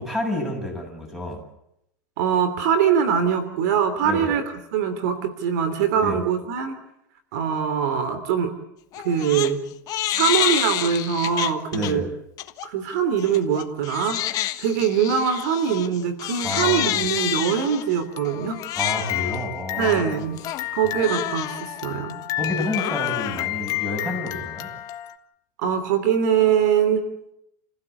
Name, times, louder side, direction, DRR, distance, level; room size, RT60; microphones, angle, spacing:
voice 1, 0.0-1.4 4.0-4.3 6.0-6.2 11.7-12.1 16.4-17.0 18.8-20.3 22.4-24.7, left 1 dB, 5° right, 2 dB, 7.8 m, -29 dB
voice 2, 2.2-4.4 4.7-6.7 7.3-8.5 9.0-9.6 10.1-12.1 12.6-14.2 14.6-18.6 19.8-20.4 20.7-22.2 25.6-27.0, right 7 dB, 70° right, 11 dB, 3.1 m, -22 dB
Crying sobbing, 8.9-9.5 9.9-11.9 12.4-12.7 13.2-25.1, left 14 dB, 40° left, 1.4 m, -29 dB
29.0 x 16.0 x 8.4 m, 0.81 s
supercardioid pair, 140°, 10 cm